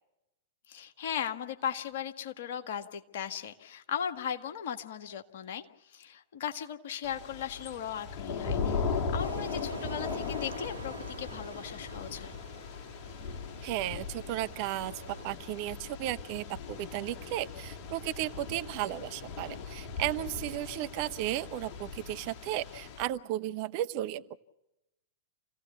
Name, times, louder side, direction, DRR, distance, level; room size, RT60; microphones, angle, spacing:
voice 1, 0.7-12.3, left 8 dB, 55° left, 6 dB, 1.8 m, -37 dB
Thunder / Rain, 7.0-23.0, left 5 dB, 40° left, 2.2 m, -38 dB
sound 1, 9.2-15.2, right 3 dB, 80° right, 1.6 m, -46 dB
voice 2, 13.6-24.4, right 14 dB, 45° right, 13 dB, 0.8 m, -34 dB
28.0 x 17.0 x 7.1 m, 0.91 s
figure-of-eight pair, 100°, 0 cm